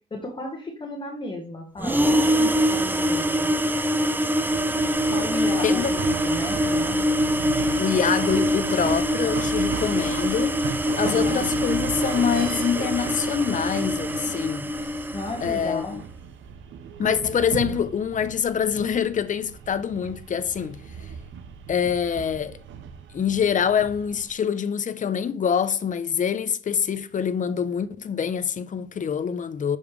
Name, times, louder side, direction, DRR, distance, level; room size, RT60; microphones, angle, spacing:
voice 1, 0.1-3.5 5.1-7.1 11.0-11.4 15.1-16.0, left 2 dB, 25° left, 1.4 m, -34 dB
sound 1, 1.8-15.7, equal, 10° right, 0.5 m, -24 dB
sound 2, 4.5-24.3, right 7 dB, 75° right, 0.8 m, -37 dB
voice 2, 7.8-10.6 11.0-14.7 15.4-16.0 17.0-21.1 21.7-22.6 23.1-29.8, left 7 dB, 40° left, 0.7 m, -25 dB
6.9 x 5.5 x 3.2 m
cardioid pair, 90°, 20 cm